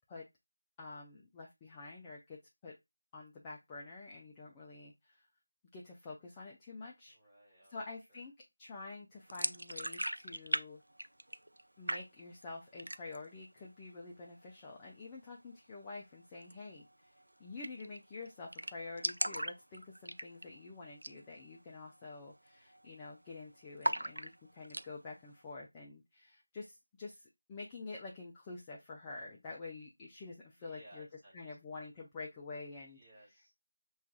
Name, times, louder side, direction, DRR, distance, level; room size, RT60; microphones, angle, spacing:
voice 1, 0.8-2.8 3.1-5.3 5.7-7.2 7.7-8.3 8.6-10.8 11.8-31.1 31.3-33.0, left 3 dB, 10° left, -3 dB, 0.4 m, -48 dB
voice 2, 7.1-7.8 8.1-8.2 30.6-31.6 32.8-33.5, right 1 dB, 10° right, -8 dB, 1.5 m, -60 dB
sound 1, 9.3-10.6 10.9-11.6 11.9-12.4 12.8-13.3 13.6-13.7 14.1-14.7 16.4-16.5 16.9-17.0 17.2-17.3 17.6-18.0 18.2-18.3 18.5-20.6 20.9-21.2 21.5-21.6 22.2-22.5 22.7-23.3 23.8-24.9, right 1 dB, 85° right, 0.3 m, -37 dB
6.1 x 2.4 x 2.3 m, 0.19 s
figure-of-eight pair, 170°, 0 cm